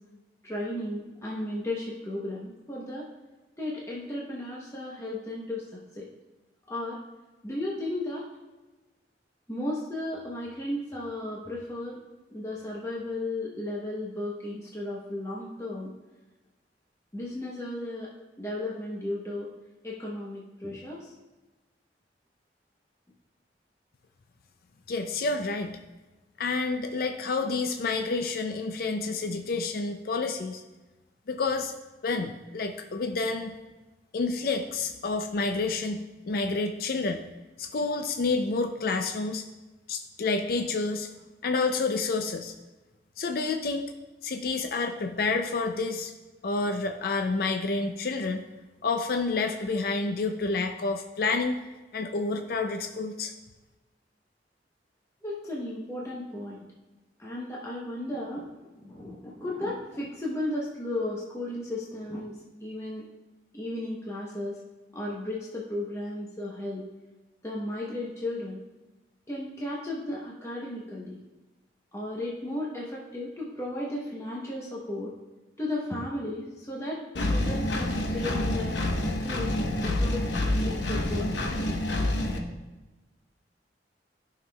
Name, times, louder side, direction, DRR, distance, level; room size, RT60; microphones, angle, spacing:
voice 1, 0.4-3.1 3.6-5.6 5.9-6.1 6.7-7.0 7.4-8.3 9.5-12.0 12.3-15.9 17.1-18.1 18.4-19.5 19.8-21.1 55.2-56.6 57.2-58.5 58.7-63.1 63.5-64.6 64.9-66.9 67.4-68.6 69.3-71.2 71.9-75.1 75.6-78.8 79.2-79.5 79.8-81.3, left 1 dB, 15° left, -4 dB, 0.9 m, -34 dB
voice 2, 24.9-25.8 26.4-30.6 31.3-31.7 32.0-33.5 34.1-37.2 37.6-39.4 39.9-41.1 41.4-42.5 43.2-43.9 44.2-46.1 46.4-48.4 48.8-51.6 51.9-53.3, left 3 dB, 55° left, 5 dB, 0.4 m, -29 dB
Engine, 77.2-82.4, left 1 dB, 90° left, 0.8 m, -27 dB
12.5 x 5.8 x 2.3 m, 1.1 s
head